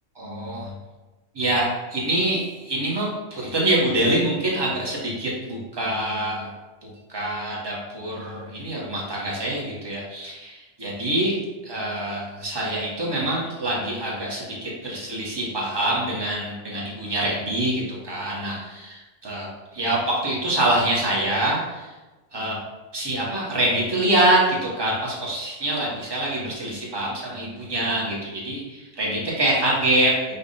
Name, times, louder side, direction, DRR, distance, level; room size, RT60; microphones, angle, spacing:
voice 1, 0.1-0.8 1.3-6.5 6.8-21.9 22.3-22.6 22.9-30.2, right 1 dB, 20° right, -5 dB, 1.0 m, -25 dB
5.2 x 2.4 x 4.1 m, 1.2 s
omnidirectional pair, 1.5 m